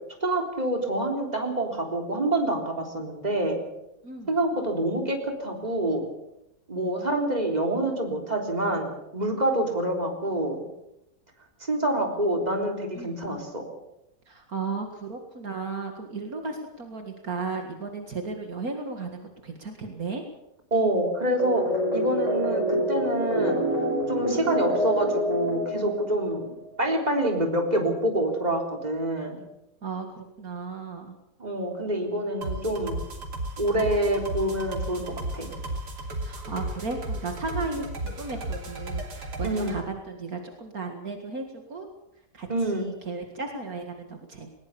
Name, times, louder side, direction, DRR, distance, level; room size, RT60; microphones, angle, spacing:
voice 1, 0.2-3.6 4.3-6.0 6.7-10.6 11.6-13.6 20.7-21.6 21.9-23.6 24.1-29.4 31.4-33.0 33.6-35.5 39.4-39.8 42.5-42.9, right 1 dB, 25° right, 2 dB, 3.8 m, -26 dB
voice 2, 4.0-4.4 9.5-9.7 13.0-13.2 14.3-20.2 24.2-24.5 29.8-31.2 36.2-41.9 42.3-44.5, right 4 dB, 60° right, 4 dB, 2.4 m, -35 dB
sound 1, 21.4-26.5, equal, 45° left, 6.7 m, -27 dB
sound 2, 32.4-39.8, right 1 dB, 85° right, 3.5 m, -34 dB
20.5 x 19.5 x 6.9 m, 0.86 s
omnidirectional pair, 1.7 m